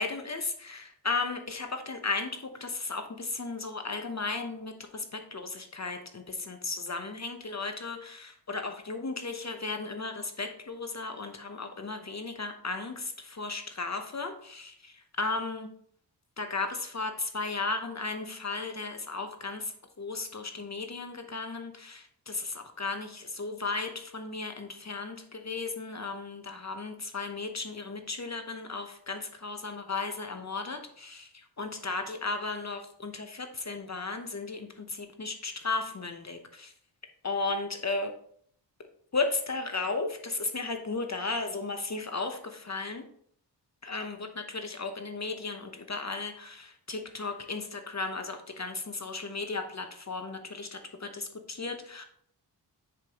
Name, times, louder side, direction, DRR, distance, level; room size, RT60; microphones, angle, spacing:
voice 1, 0.0-15.7 16.4-36.7 37.2-38.1 39.1-43.1 43.8-52.0, left 3 dB, 40° left, 6 dB, 0.9 m, -35 dB
9.7 x 5.0 x 3.0 m, 0.63 s
wide cardioid pair, 70°, 43 cm